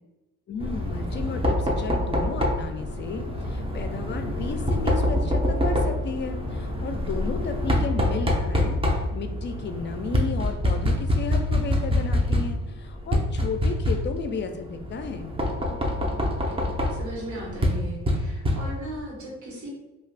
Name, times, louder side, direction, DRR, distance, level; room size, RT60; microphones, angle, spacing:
voice 1, 0.5-15.3, left 4 dB, 40° left, 7 dB, 0.4 m, -33 dB
Knock, 0.6-19.0, left 1 dB, 20° right, 0.5 m, -26 dB
voice 2, 15.6-19.7, right 1 dB, 75° right, -3 dB, 1.1 m, -39 dB
2.3 x 2.3 x 3.2 m, 1.0 s
cardioid pair, 90°, 30 cm